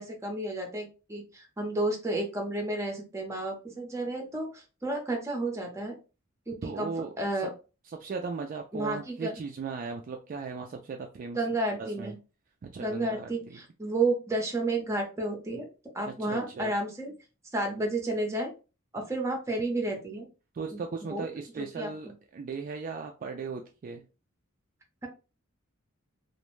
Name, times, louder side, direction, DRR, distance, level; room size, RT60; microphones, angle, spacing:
voice 1, 0.0-6.0 6.5-6.9 7.2-7.5 8.7-9.3 11.3-12.2 12.8-15.7 15.9-17.1 17.5-18.5 18.9-20.3 20.7-20.8 21.1-21.3 21.6-21.9, right 2 dB, 15° right, 2 dB, 0.7 m, -31 dB
voice 2, 6.6-7.4 7.8-11.4 11.8-12.2 12.6-13.6 16.0-16.7 20.5-24.0, right 4 dB, 40° right, 3 dB, 0.3 m, -37 dB
2.5 x 2.1 x 3.0 m, 0.32 s
head